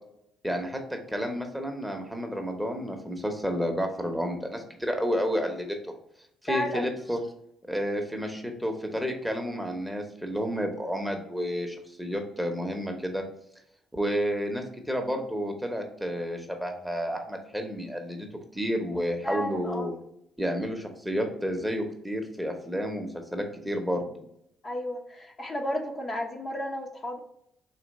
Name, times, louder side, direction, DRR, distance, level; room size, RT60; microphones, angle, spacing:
voice 1, 0.4-5.9 6.4-7.2 7.7-13.2 13.9-18.3 18.5-19.9 20.4-24.2, equal, 5° right, 3 dB, 0.8 m, -31 dB
voice 2, 6.5-6.9 19.2-20.0 24.6-27.2, equal, 40° left, 1 dB, 0.7 m, -32 dB
3.9 x 2.8 x 4.1 m, 0.75 s
cardioid pair, 80°, 0 cm